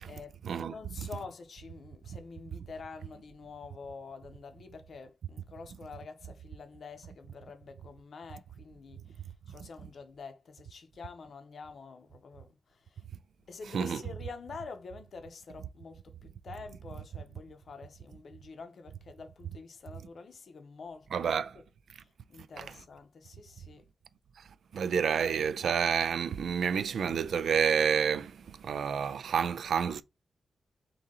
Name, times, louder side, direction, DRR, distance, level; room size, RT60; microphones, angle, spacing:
voice 1, 0.6-9.2 9.5-13.0 13.5-21.6 22.0-23.9, left 4 dB, 55° left, 0.6 m, -47 dB
voice 2, 21.1-21.5 22.6-22.7 24.7-28.3 28.6-30.0, right 7 dB, 75° right, 0.3 m, -29 dB
3.7 x 2.7 x 4.0 m
wide cardioid pair, 175°, 0 cm